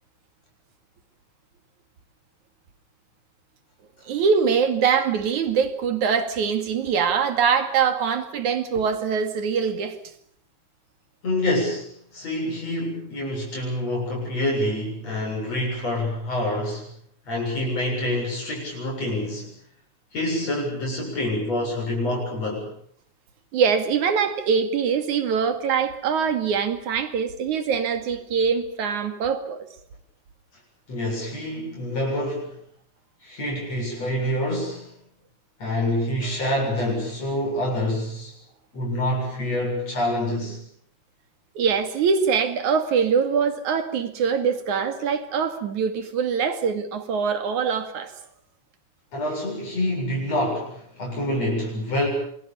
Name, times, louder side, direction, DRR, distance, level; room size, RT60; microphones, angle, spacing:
voice 1, 4.1-10.0 23.5-29.6 41.6-48.1, right 6 dB, 80° right, 3.7 m, -23 dB
voice 2, 11.2-11.9 12.1-16.9 17.3-19.5 20.1-22.7 30.9-32.5 33.2-34.9 35.6-38.3 38.7-40.6 49.1-52.1, left 1 dB, 55° left, 8.6 m, -26 dB
27.5 x 22.0 x 7.0 m
omnidirectional pair, 3.4 m